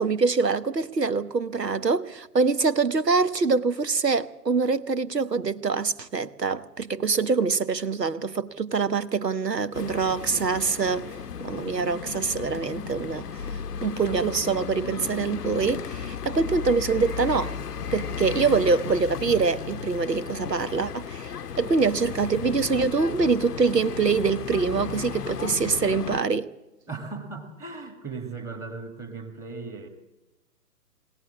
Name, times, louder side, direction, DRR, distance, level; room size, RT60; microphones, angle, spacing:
voice 1, 0.0-11.0 11.4-13.3 13.8-17.6 17.9-21.3 21.6-26.5, right 4 dB, 85° right, 1.3 m, -24 dB
sound 1, 9.7-26.2, left 7 dB, 70° left, 0.8 m, -35 dB
voice 2, 26.9-29.9, right 4 dB, 5° right, 1.4 m, -37 dB
22.0 x 17.0 x 7.3 m
figure-of-eight pair, 140°, 48 cm